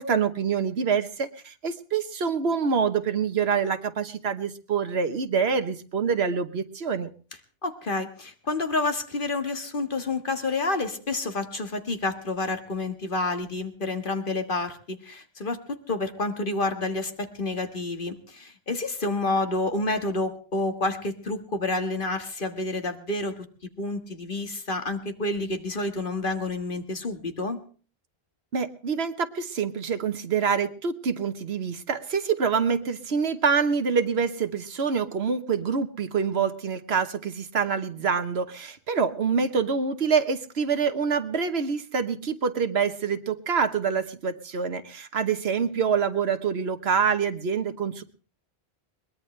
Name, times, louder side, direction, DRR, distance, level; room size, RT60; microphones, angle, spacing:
voice 1, 0.0-7.1 28.5-48.0, right 6 dB, 75° right, 10 dB, 1.4 m, -26 dB
voice 2, 7.6-23.5 23.8-27.6, left 2 dB, 55° left, 7 dB, 1.9 m, -29 dB
22.0 x 20.0 x 3.3 m, 0.38 s
omnidirectional pair, 1.1 m